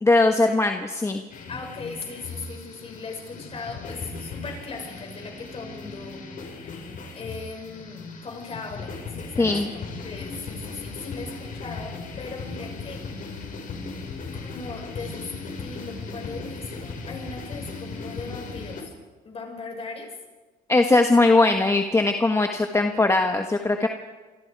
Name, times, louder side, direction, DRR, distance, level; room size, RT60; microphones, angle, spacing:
voice 1, 0.0-1.2 9.4-9.7 20.7-23.9, left 2 dB, 15° left, 5 dB, 1.5 m, -20 dB
sound 1, 1.3-18.8, left 4 dB, 50° left, 5.2 m, -37 dB
voice 2, 1.5-6.2 6.5-6.7 7.1-13.0 14.4-15.3 15.6-18.9 19.2-20.1, left 4 dB, 35° left, 3 dB, 6.3 m, -38 dB
27.5 x 23.5 x 4.9 m, 1.3 s
cardioid pair, 110°, 17 cm